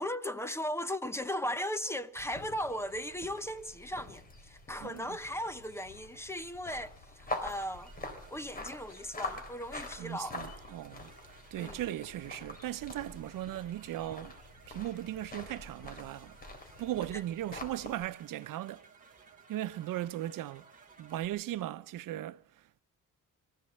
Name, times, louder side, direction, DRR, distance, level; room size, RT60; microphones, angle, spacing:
voice 1, 0.0-7.9 8.3-10.4 11.6-11.8, equal, 10° left, 0.8 m, -37 dB
sound 1, 2.2-18.1, left 2 dB, 25° left, 3.8 m, -45 dB
voice 2, 4.8-5.2 10.0-11.1 11.5-14.4 14.7-16.4 16.8-18.8 19.5-20.6 21.0-22.8, right 13 dB, 85° right, 0.8 m, -38 dB
sound 2, 7.5-21.3, right 5 dB, 25° right, 3.9 m, -59 dB
23.0 x 15.0 x 7.8 m
cardioid pair, 160°, 32 cm